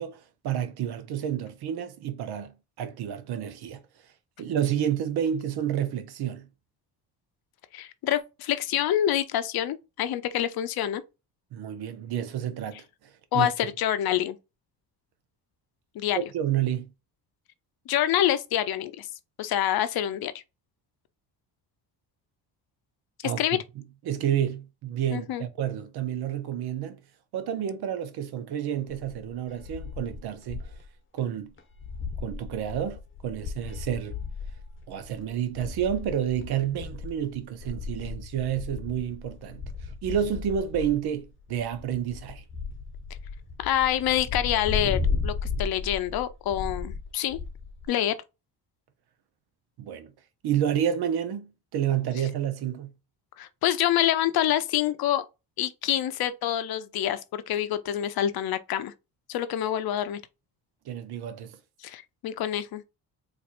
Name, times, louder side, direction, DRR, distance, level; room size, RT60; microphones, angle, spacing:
voice 1, 0.0-3.8 4.4-6.5 11.5-12.8 13.3-13.5 16.1-16.9 23.2-23.6 24.1-27.0 27.3-30.7 31.1-31.5 32.2-34.1 34.9-42.4 49.8-50.1 50.4-52.9 60.9-61.6, right 9 dB, 70° right, 0.8 m, -30 dB
voice 2, 7.7-11.0 13.3-14.4 15.9-16.2 17.9-19.1 19.4-20.3 23.2-23.6 25.1-25.4 43.6-47.4 47.9-48.2 53.4-55.2 55.6-58.9 59.3-60.2 61.8-62.8, left 11 dB, 65° left, 0.6 m, -26 dB
sound 1, 28.9-30.9 31.2-31.3 31.6-47.9, left 4 dB, 30° left, 0.9 m, -35 dB
4.2 x 2.5 x 2.5 m
cardioid pair, 105°, 40 cm